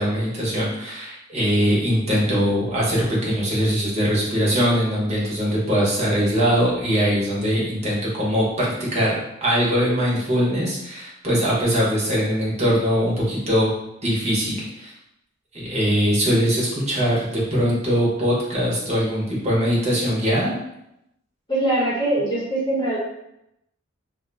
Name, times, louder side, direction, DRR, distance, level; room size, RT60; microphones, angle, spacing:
voice 1, 0.0-9.2 9.4-13.7 14.0-14.9 15.5-20.5, equal, 35° right, -6 dB, 0.9 m, -21 dB
voice 2, 21.5-23.0, right 1 dB, 25° left, -6 dB, 1.0 m, -22 dB
2.6 x 2.2 x 3.9 m, 0.83 s
head